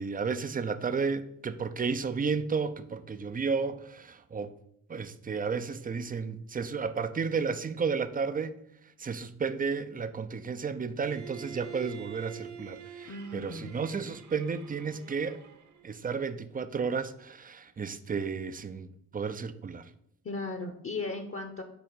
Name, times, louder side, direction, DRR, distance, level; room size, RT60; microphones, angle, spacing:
voice 1, 0.0-4.6 4.9-8.5 9.0-15.4 15.8-19.9, right 5 dB, 20° right, 11 dB, 0.5 m, -32 dB
Bowed string instrument, 11.0-15.9, right 8 dB, 35° right, 0.9 m, -47 dB
voice 2, 13.0-13.8 20.2-21.6, left 3 dB, 30° left, 6 dB, 0.9 m, -36 dB
6.9 x 4.4 x 4.0 m, 0.75 s
hypercardioid pair, 45°, 48 cm